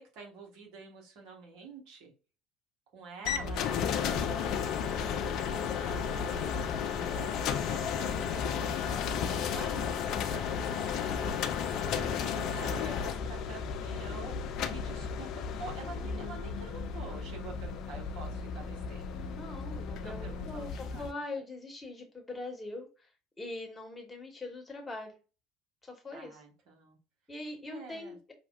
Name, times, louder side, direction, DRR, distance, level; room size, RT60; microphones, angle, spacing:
voice 1, 0.0-2.1 2.9-6.5 7.1-11.5 12.0-15.3 15.6-19.1 20.0-21.2 26.1-27.0 27.7-28.2, right 4 dB, 55° right, 0 dB, 1.1 m, -48 dB
sound 1, 3.2-21.1, left 7 dB, 50° left, 0.4 m, -33 dB
voice 2, 19.1-23.1 23.4-25.2 25.8-26.4 27.3-28.2, left 2 dB, 15° left, 1 dB, 1.1 m, -42 dB
5.5 x 2.2 x 2.3 m, 0.34 s
figure-of-eight pair, 65°, 0 cm